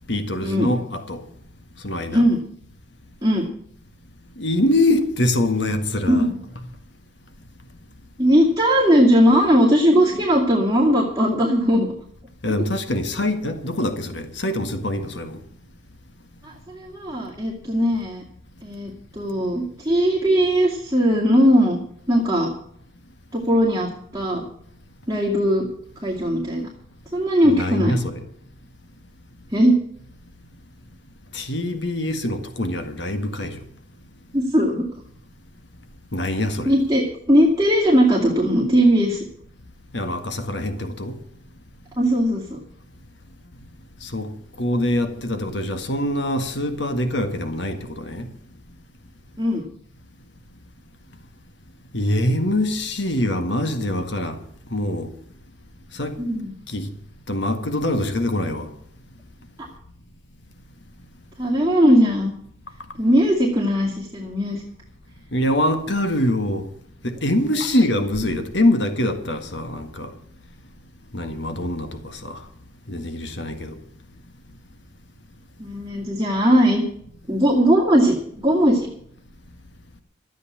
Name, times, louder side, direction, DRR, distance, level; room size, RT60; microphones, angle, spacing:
voice 1, 0.1-1.2 1.8-2.2 4.4-6.3 12.4-15.4 27.4-28.2 31.3-33.6 36.1-36.7 39.9-41.2 44.0-44.3 44.6-48.3 51.9-54.4 54.7-55.1 55.9-56.2 56.7-56.9 57.3-58.7 65.3-66.7 67.0-70.1 71.1-72.4 72.9-73.7, left 1 dB, 65° left, 1.8 m, -24 dB
voice 2, 6.1-6.4 8.2-11.9 16.4-18.2 18.6-21.8 22.1-22.5 23.3-24.5 25.1-25.7 26.0-26.7 27.1-28.0 29.5-29.8 34.3-34.8 36.6-37.0 37.3-39.2 42.0-42.6 49.4-49.6 56.2-56.5 59.6-59.7 61.4-62.3 63.0-64.6 75.6-76.8 77.3-78.9, equal, 15° right, 2.3 m, -19 dB
13.5 x 8.4 x 8.3 m
head